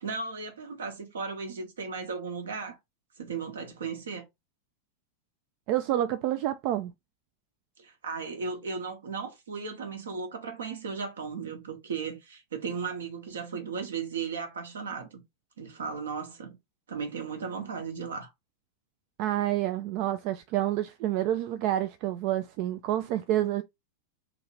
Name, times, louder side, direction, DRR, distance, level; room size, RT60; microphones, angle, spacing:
voice 1, 0.0-2.8 3.2-4.3 7.8-15.2 15.6-16.6 16.9-18.3, right 5 dB, 65° right, 1.0 m, -36 dB
voice 2, 5.7-6.9 19.2-23.6, right 13 dB, 45° right, 0.3 m, -28 dB
2.7 x 2.7 x 4.2 m
figure-of-eight pair, 90°, 0 cm